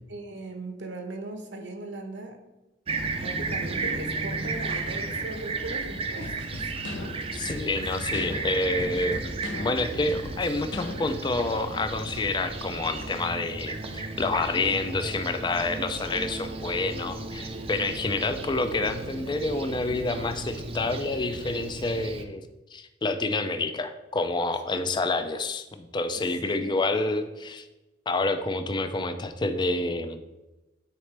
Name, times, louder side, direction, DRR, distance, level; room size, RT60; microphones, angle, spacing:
voice 1, 0.1-2.4 3.2-6.7 24.7-24.9 26.1-27.2, right 2 dB, 65° right, 5 dB, 0.9 m, -39 dB
Fixed-wing aircraft airplane, 2.9-22.2, right 3 dB, 30° right, 0.5 m, -34 dB
sound 1, 6.2-11.3, left 2 dB, 70° left, 0.7 m, -39 dB
voice 2, 7.3-22.4 22.7-27.6 28.1-30.2, left 2 dB, 25° left, 9 dB, 0.4 m, -28 dB
9.7 x 4.0 x 3.3 m, 1.0 s
head